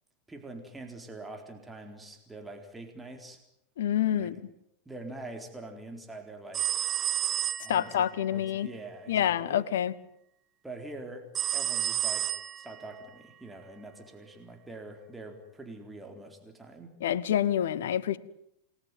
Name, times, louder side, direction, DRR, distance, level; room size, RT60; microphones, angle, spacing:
voice 1, 0.3-3.4 4.1-4.3 4.9-6.7 7.6-9.6 10.6-11.3 11.5-17.0, right 2 dB, 10° right, 4.1 m, -44 dB
voice 2, 3.8-4.4 7.7-8.7 9.1-9.9 17.0-18.2, left 10 dB, 60° left, 1.3 m, -27 dB
sound 1, 6.5-8.0 11.3-12.8, right 11 dB, 30° right, 1.3 m, -30 dB
29.0 x 20.5 x 9.3 m
figure-of-eight pair, 90°, 0 cm